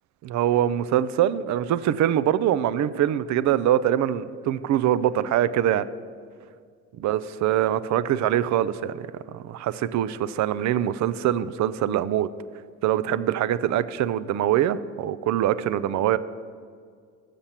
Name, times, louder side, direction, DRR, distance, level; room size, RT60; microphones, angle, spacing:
voice 1, 0.2-5.9 7.0-12.3 12.8-16.2, right 11 dB, 65° right, 16 dB, 0.4 m, -23 dB
6.6 x 5.7 x 7.3 m, 2.1 s
cardioid pair, 90°, 30 cm